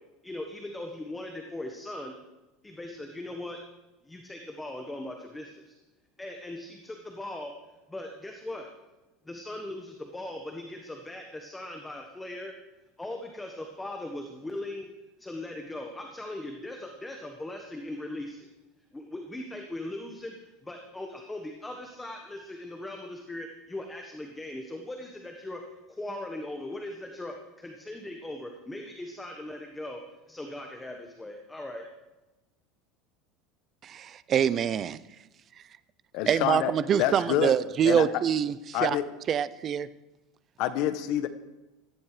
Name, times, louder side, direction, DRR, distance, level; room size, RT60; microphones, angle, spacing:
voice 1, 0.2-2.2 2.6-3.6 4.0-5.7 6.2-7.5 7.9-8.7 9.2-12.5 13.0-14.9 15.2-18.5 18.9-25.6 25.9-30.0 30.3-31.9, left 1 dB, 5° left, 3 dB, 1.4 m, -39 dB
voice 2, 33.8-35.0 36.3-39.0 39.3-39.9, right 8 dB, 25° right, 16 dB, 0.6 m, -25 dB
voice 3, 36.1-36.7 37.0-37.5 37.8-38.1 38.7-39.0 40.6-41.3, left 11 dB, 50° left, 11 dB, 1.2 m, -27 dB
17.5 x 14.0 x 5.0 m, 1.0 s
supercardioid pair, 165°, 0 cm